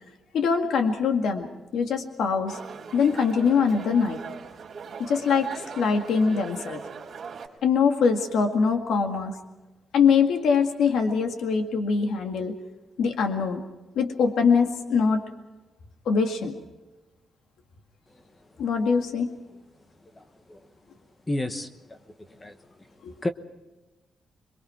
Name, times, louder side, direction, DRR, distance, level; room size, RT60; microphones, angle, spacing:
voice 1, 0.3-2.6 2.9-4.2 5.0-6.8 7.6-9.3 9.9-12.5 13.0-13.6 14.0-15.2 16.1-16.6 18.6-19.3 23.0-23.1, left 5 dB, 80° left, 4 dB, 2.0 m, -23 dB
sound 1, 2.5-7.5, right 6 dB, 35° right, 3.7 m, -40 dB
voice 2, 20.2-20.6 21.3-22.0 22.3-22.6 23.2-23.3, left 1 dB, 15° left, 9 dB, 1.0 m, -32 dB
27.5 x 22.5 x 4.5 m, 1.1 s
wide cardioid pair, 175°, 0 cm